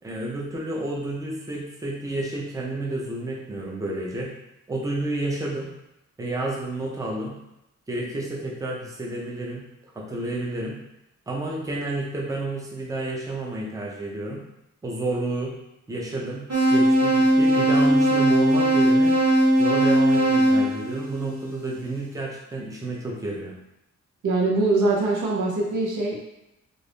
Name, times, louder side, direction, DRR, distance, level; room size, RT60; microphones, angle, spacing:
voice 1, 0.0-4.3 4.7-5.7 6.2-7.4 7.9-9.6 10.0-10.8 11.3-14.4 14.8-15.6 15.9-19.1 19.6-23.5, right 2 dB, 10° right, -3 dB, 0.5 m, -30 dB
sound 1, 16.5-21.6, right 1 dB, 65° right, 1.2 m, -19 dB
voice 2, 24.2-26.2, right 2 dB, 80° right, -2 dB, 0.8 m, -23 dB
2.5 x 2.5 x 3.4 m, 0.87 s
wide cardioid pair, 135°, 30 cm